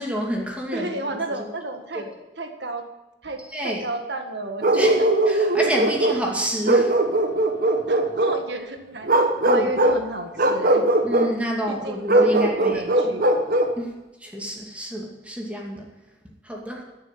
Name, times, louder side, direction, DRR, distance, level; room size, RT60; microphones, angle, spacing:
voice 1, 0.0-1.0 1.4-1.5 1.9-2.1 3.5-3.9 4.7-5.0 5.3-6.9 9.5-9.7 11.0-13.1 13.8-13.9 14.2-15.8 16.4-16.9, equal, 5° right, -1 dB, 2.4 m, -28 dB
voice 2, 0.7-2.1 2.4-2.9 3.2-5.1 7.9-9.1 9.4-10.9 11.7-13.2, right 2 dB, 70° right, 5 dB, 1.7 m, -32 dB
Bark, 4.6-6.2 6.6-8.4 9.0-10.0 10.4-11.3 12.1-13.8, right 1 dB, 50° right, 1.2 m, -20 dB
14.5 x 6.9 x 9.2 m, 1.0 s
head